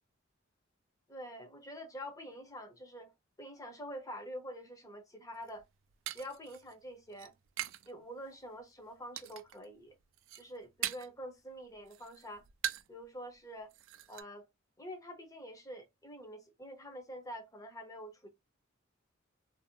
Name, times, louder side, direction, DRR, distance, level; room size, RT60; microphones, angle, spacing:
voice 1, 1.1-3.1 3.4-5.6 6.1-7.3 7.9-10.0 10.3-12.4 12.9-13.7 14.1-14.5 14.8-18.3, equal, 15° left, 0.7 m, -46 dB
sound 1, 5.3-7.9 8.2-8.7 9.2-9.7 10.0-11.2 11.6-13.0 13.3-13.4 13.7-14.2, right 12 dB, 70° right, 0.3 m, -42 dB
2.6 x 2.0 x 2.7 m
head